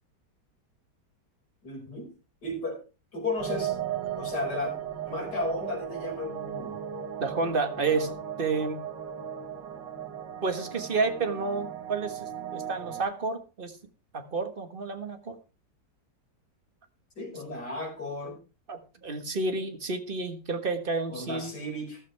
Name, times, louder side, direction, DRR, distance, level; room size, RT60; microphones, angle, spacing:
voice 1, 1.6-2.1 2.4-2.8 3.1-3.7 4.2-4.7 5.1-6.7 7.9-8.1 17.2-18.4 21.1-22.0, left 2 dB, 65° left, 0 dB, 5.8 m, -34 dB
sound 1, 3.4-13.0, right 9 dB, 90° right, 1.9 m, -36 dB
voice 2, 7.2-8.1 8.4-8.8 10.4-13.8 14.1-15.4 18.7-21.6, right 4 dB, 30° right, 7 dB, 1.5 m, -30 dB
14.0 x 12.5 x 3.4 m, 0.31 s
omnidirectional pair, 1.9 m